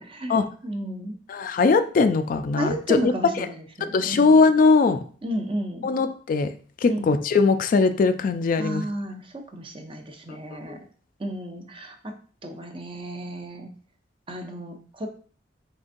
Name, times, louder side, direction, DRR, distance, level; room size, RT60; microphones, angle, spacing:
voice 1, 0.0-1.1 2.6-4.4 5.2-5.9 6.9-7.1 8.6-10.8 11.2-12.1 12.4-13.7 14.3-15.1, equal, 30° right, 5 dB, 0.6 m, -33 dB
voice 2, 1.3-3.0 3.4-3.5 3.8-5.0 5.8-6.5 6.8-8.8 10.7-10.8, left 4 dB, 50° left, 10 dB, 0.3 m, -20 dB
4.3 x 3.8 x 2.5 m, 0.43 s
head